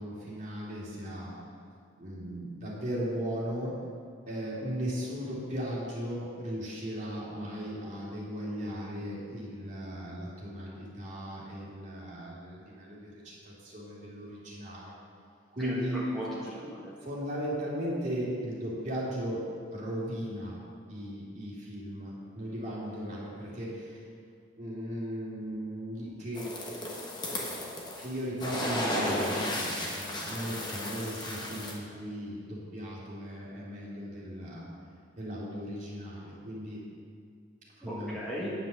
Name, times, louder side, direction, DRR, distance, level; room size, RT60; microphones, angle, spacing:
voice 1, 0.0-1.3 2.0-3.7 4.3-14.9 15.5-16.0 16.6-16.7 17.0-19.4 19.7-20.6 20.9-24.0 24.6-26.5 26.8-27.0 27.5-27.7 28.0-34.7 35.2-36.8 37.8-38.2, equal, 40° right, -6 dB, 2.6 m, -37 dB
voice 2, 15.6-16.9 37.8-38.5, equal, ahead, -8 dB, 1.3 m, -37 dB
sound 1, 26.4-28.1 28.4-31.7, left 1 dB, 20° left, 1.3 m, -34 dB
9.6 x 5.8 x 6.7 m, 2.2 s
head